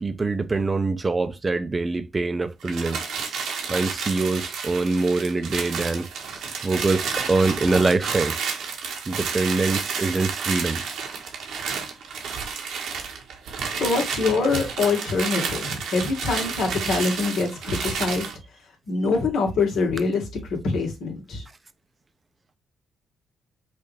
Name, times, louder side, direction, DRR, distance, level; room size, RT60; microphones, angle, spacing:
voice 1, 0.0-3.0 3.3-8.4 9.1-10.8, right 3 dB, 25° right, 0.7 m, -24 dB
sound 1, 2.6-18.4, right 6 dB, 80° right, 1.3 m, -31 dB
voice 2, 13.8-18.3 18.9-21.4, left 4 dB, 70° left, 1.9 m, -24 dB
5.4 x 2.8 x 3.3 m
cardioid pair, 90°, 0 cm